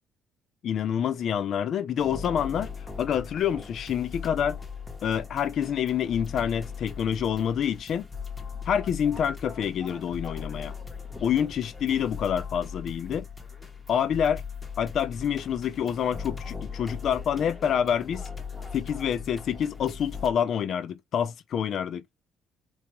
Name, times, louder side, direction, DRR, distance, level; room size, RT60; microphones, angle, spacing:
voice 1, 0.6-2.7 3.0-4.6 5.0-8.1 8.7-10.7 11.2-13.3 13.9-14.4 14.8-18.3 18.7-22.0, left 8 dB, 45° left, 0.4 m, -27 dB
sound 1, 2.0-20.3, left 5 dB, 10° left, 0.8 m, -39 dB
4.0 x 2.2 x 2.9 m
cardioid pair, 175°, 0 cm